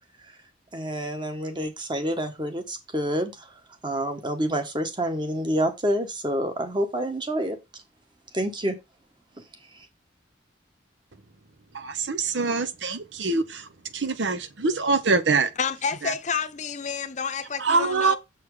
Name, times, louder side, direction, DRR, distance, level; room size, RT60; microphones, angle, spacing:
voice 1, 0.7-3.5 3.8-7.6 8.3-8.8 9.7-9.9, right 1 dB, 25° right, 1.4 m, -28 dB
voice 2, 11.7-13.7 13.9-15.5 16.0-16.1 17.6-18.2, right 4 dB, 80° right, 1.0 m, -24 dB
voice 3, 15.6-18.2, left 6 dB, 40° left, 0.8 m, -29 dB
7.3 x 4.4 x 4.9 m
head